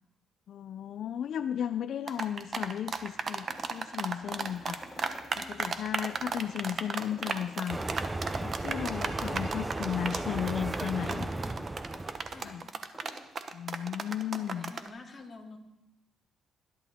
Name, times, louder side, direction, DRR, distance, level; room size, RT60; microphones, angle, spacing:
voice 1, 0.5-7.8 8.4-11.3 12.4-12.6 13.5-14.7, left 9 dB, 65° left, 11 dB, 0.4 m, -35 dB
sound 1, 2.1-14.9, right 5 dB, 45° right, 1.0 m, -34 dB
sound 2, 3.0-5.6 6.0-8.7 9.0-12.5 12.8-13.2, left 1 dB, 5° left, 4.7 m, -51 dB
voice 2, 5.3-5.7 11.0-11.7 12.3-12.8 14.4-15.6, left 3 dB, 35° left, 1 dB, 2.2 m, -49 dB
sound 3, 7.7-12.5, right 2 dB, 20° right, 0.6 m, -35 dB
19.5 x 11.0 x 3.6 m, 0.92 s
cardioid pair, 90°, 0 cm